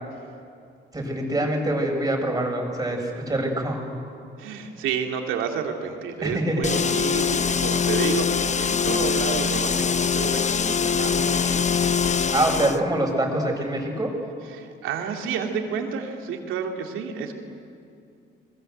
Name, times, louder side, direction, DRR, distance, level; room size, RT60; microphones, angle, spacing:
voice 1, 0.9-3.8 6.2-6.6 12.3-14.1, right 1 dB, 20° right, 1 dB, 6.3 m, -25 dB
voice 2, 4.4-12.0 14.5-17.3, right 7 dB, 90° right, 3 dB, 2.7 m, -30 dB
sound 1, 6.6-12.8, left 6 dB, 35° left, 0.9 m, -23 dB
29.0 x 21.5 x 8.0 m, 2.5 s
cardioid pair, 90°, 20 cm